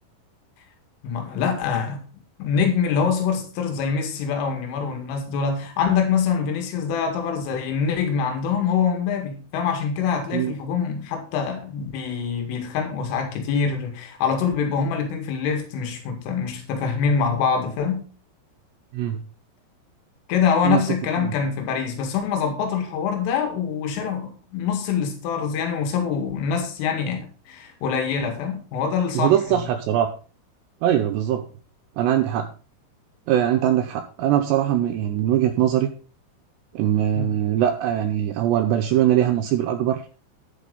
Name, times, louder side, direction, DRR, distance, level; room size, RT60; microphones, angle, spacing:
voice 1, 1.0-2.1 2.4-18.0 20.3-29.6 37.2-37.3, left 6 dB, 80° left, 4.6 m, -25 dB
voice 2, 29.2-30.1 30.8-31.5 32.0-32.5 33.3-35.9 36.7-40.0, right 11 dB, 80° right, 2.6 m, -21 dB
11.5 x 10.0 x 4.0 m
omnidirectional pair, 5.7 m